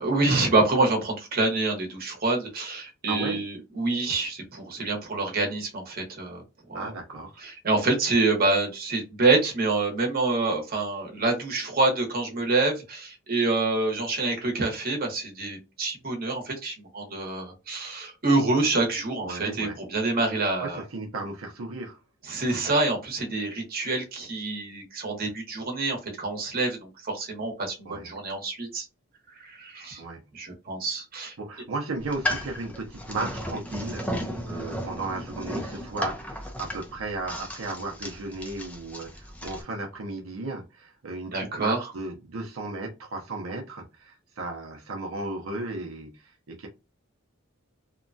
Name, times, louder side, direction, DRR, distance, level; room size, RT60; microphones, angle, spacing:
voice 1, 0.0-6.4 6.7-6.8 7.4-20.8 22.2-28.9 29.4-30.0 30.3-31.3 41.3-41.8, right 3 dB, 45° right, 1.0 m, -26 dB
voice 2, 3.1-3.4 6.7-7.4 19.2-19.8 20.6-22.0 27.8-28.1 30.0-30.2 31.4-46.7, right 2 dB, 80° right, 0.6 m, -35 dB
sound 1, 32.0-39.6, left 1 dB, 5° left, 0.5 m, -34 dB
2.9 x 2.2 x 2.5 m
head